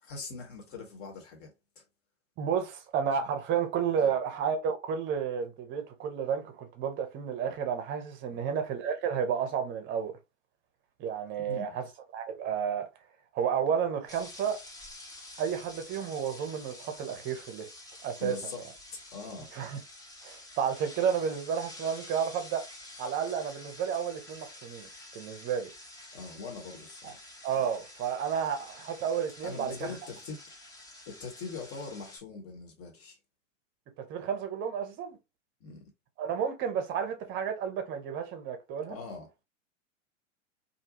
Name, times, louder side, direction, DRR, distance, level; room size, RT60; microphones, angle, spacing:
voice 1, 0.0-1.8 4.0-4.1 8.3-8.5 11.4-11.7 18.2-18.6 18.9-19.5 26.1-27.2 29.4-30.4 31.1-33.2 35.6-35.8 38.9-39.3, left 4 dB, 35° left, 1.1 m, -42 dB
voice 2, 2.4-10.1 11.0-11.8 12.1-12.9 13.3-14.6 15.4-17.7 18.0-18.6 19.5-19.8 20.2-22.7 23.0-24.9 25.1-25.7 27.0-27.1 27.4-29.9 34.0-35.2 36.2-39.0, right 7 dB, 30° right, 0.7 m, -31 dB
sound 1, 14.1-32.2, left 1 dB, 10° left, 0.6 m, -49 dB
2.6 x 2.2 x 2.8 m
figure-of-eight pair, 95°, 38 cm